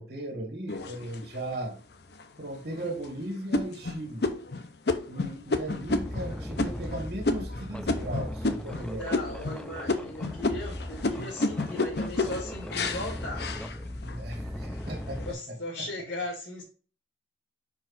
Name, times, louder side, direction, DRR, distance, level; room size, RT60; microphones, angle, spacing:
voice 1, 0.0-1.8 2.4-4.3 5.1-9.6 14.0-15.6, right 1 dB, 60° right, 3 dB, 1.7 m, -37 dB
sound 1, 0.7-1.5 2.1-2.2 2.7-3.0 3.5-8.8 9.1-9.6 9.9-14.2 14.7-15.2, left 2 dB, 60° left, 0.7 m, -30 dB
sound 2, 5.6-15.3, left 1 dB, 5° left, 0.4 m, -38 dB
voice 2, 8.7-13.4 15.2-16.6, left 1 dB, 80° left, -3 dB, 2.0 m, -38 dB
5.4 x 4.8 x 4.0 m, 0.38 s
head